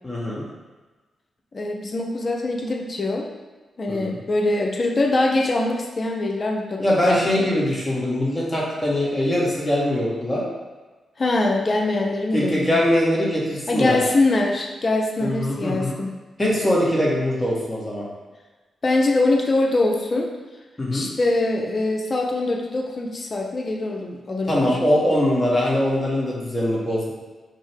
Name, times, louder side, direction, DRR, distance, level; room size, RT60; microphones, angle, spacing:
voice 1, 0.0-0.5 3.9-4.2 6.8-10.5 12.3-14.0 15.2-16.0 16.4-18.0 20.8-21.1 24.5-27.1, left 1 dB, 25° left, -5 dB, 1.4 m, -22 dB
voice 2, 1.5-3.3 3.8-7.5 11.2-12.7 13.7-16.1 18.8-20.3 20.9-24.8, left 2 dB, 45° left, 1 dB, 0.7 m, -23 dB
5.2 x 2.1 x 3.4 m, 1.3 s
supercardioid pair, 45°, 0 cm